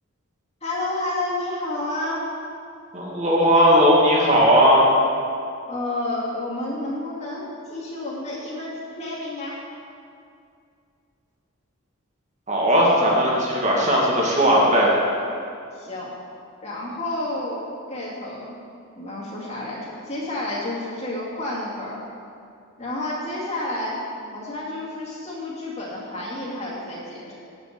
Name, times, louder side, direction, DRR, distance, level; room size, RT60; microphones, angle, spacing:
voice 1, 0.6-2.3 5.7-9.6 12.7-13.3 15.7-16.1 16.6-17.6 17.9-18.5 19.0-22.1 22.8-24.0 24.3-27.3, left 1 dB, 30° left, -6 dB, 2.3 m, -30 dB
voice 2, 2.9-4.8 12.5-14.9, equal, 35° right, -3 dB, 1.9 m, -17 dB
8.5 x 6.7 x 6.7 m, 2.4 s
head